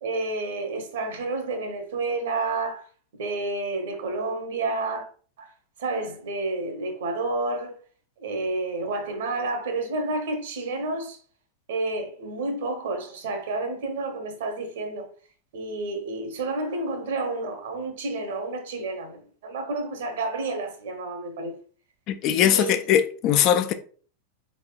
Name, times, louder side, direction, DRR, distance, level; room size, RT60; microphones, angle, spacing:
voice 1, 0.0-2.8 3.2-5.1 5.4-5.5 5.8-7.7 8.2-11.2 11.7-15.1 15.5-21.5 22.4-22.7, right 2 dB, 60° right, 0.9 m, -30 dB
voice 2, 22.1-23.7, left 10 dB, 40° left, 0.4 m, -21 dB
4.2 x 4.1 x 2.3 m
figure-of-eight pair, 90°, 0 cm